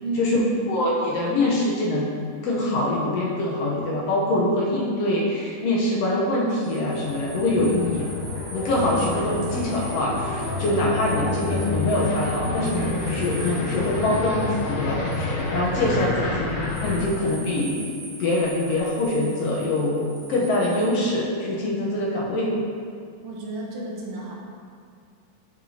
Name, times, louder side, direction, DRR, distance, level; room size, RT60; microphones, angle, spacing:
voice 1, 0.0-0.6 23.2-24.3, right 3 dB, 65° right, -3 dB, 1.8 m, -31 dB
voice 2, 0.7-2.1 2.4-8.1 8.5-17.8 18.2-22.5, left 1 dB, 70° left, -4 dB, 1.7 m, -24 dB
sound 1, 6.5-15.8 16.6-21.0, right 2 dB, 85° right, 3.2 m, -42 dB
sound 2, 7.0-17.1, left 3 dB, 90° left, 2.4 m, -29 dB
7.6 x 6.2 x 2.8 m, 2.2 s
omnidirectional pair, 3.6 m